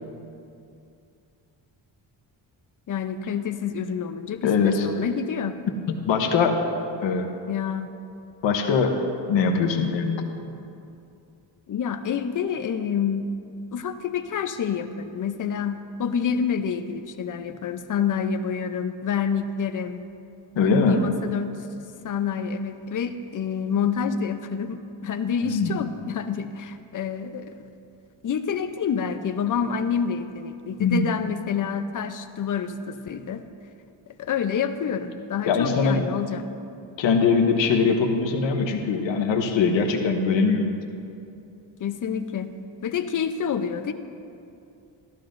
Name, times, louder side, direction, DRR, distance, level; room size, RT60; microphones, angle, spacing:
voice 1, 2.9-5.6 7.5-7.9 11.7-13.3 13.7-20.0 20.6-21.6 22.0-27.5 28.2-33.4 34.2-36.4 41.8-42.5 42.8-43.9, left 7 dB, 45° left, 9 dB, 0.7 m, -28 dB
voice 2, 4.4-4.9 5.9-6.6 7.0-7.3 8.4-9.0 9.3-10.2 20.6-21.0 25.4-25.7 30.8-31.1 35.5-36.0 37.0-40.7, left 5 dB, 75° left, 3 dB, 1.1 m, -22 dB
13.5 x 12.0 x 2.6 m, 2.6 s
cardioid pair, 90°, 45 cm